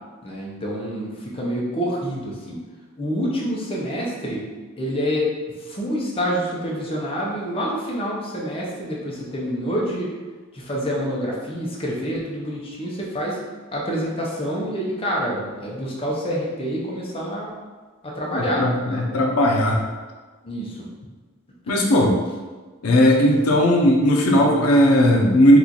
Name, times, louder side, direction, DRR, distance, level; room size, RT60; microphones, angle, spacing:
voice 1, 0.2-2.6 3.0-4.4 4.8-5.3 5.6-10.1 10.5-13.4 13.7-17.5 18.0-19.0 20.4-20.9, equal, 25° left, -4 dB, 0.6 m, -27 dB
voice 2, 18.3-19.8 21.7-22.2 22.8-25.6, equal, 80° left, 0 dB, 0.5 m, -17 dB
3.0 x 2.4 x 3.8 m, 1.3 s
head